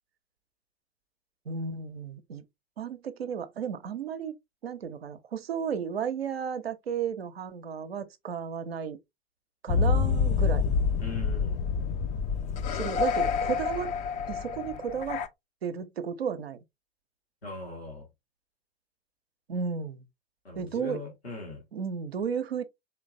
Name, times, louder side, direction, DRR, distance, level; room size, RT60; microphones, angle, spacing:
voice 1, 1.5-2.4 2.8-4.3 4.6-9.0 9.6-10.6 12.7-13.9 14.3-15.2 15.6-16.6 19.5-20.1 20.6-21.0 21.7-22.6, right 7 dB, 80° right, 0.6 m, -33 dB
sound 1, 9.7-15.3, left 5 dB, 25° left, 0.4 m, -27 dB
voice 2, 11.0-11.6 17.4-18.0 20.4-21.6, left 2 dB, 85° left, 1.5 m, -40 dB
4.4 x 3.1 x 2.4 m
figure-of-eight pair, 85°, 30 cm